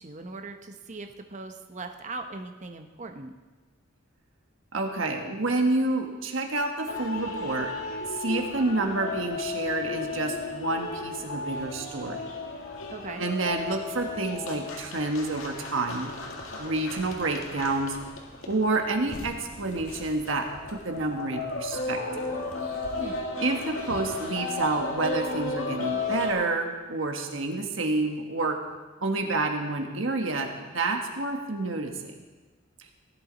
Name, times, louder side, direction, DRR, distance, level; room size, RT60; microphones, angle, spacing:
voice 1, 0.0-3.3 12.9-13.2 23.0-23.2, right 3 dB, 35° right, 5 dB, 0.8 m, -39 dB
voice 2, 4.7-7.7 8.2-12.2 13.2-16.1 16.5-18.0 18.5-22.0 23.4-28.6 29.0-32.1, right 2 dB, 70° right, 3 dB, 1.5 m, -29 dB
sound 1, 6.9-26.3, left 3 dB, 80° left, 1.9 m, -35 dB
17.0 x 11.5 x 4.0 m, 1.3 s
head